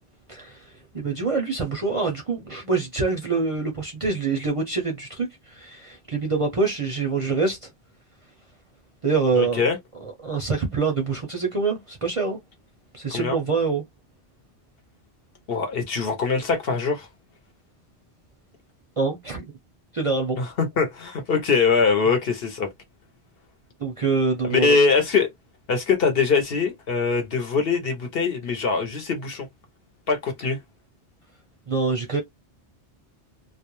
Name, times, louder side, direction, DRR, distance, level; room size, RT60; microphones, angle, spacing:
voice 1, 0.3-7.7 9.0-9.6 10.0-12.4 12.9-13.8 19.0-19.5 19.9-20.4 23.8-24.8 31.7-32.2, right 4 dB, 40° right, 0.5 m, -25 dB
voice 2, 9.4-9.8 13.1-13.4 15.5-17.1 20.4-22.7 24.4-25.3 25.7-29.5 30.1-30.6, left 5 dB, 60° left, 1.0 m, -22 dB
2.4 x 2.1 x 2.9 m
omnidirectional pair, 1.1 m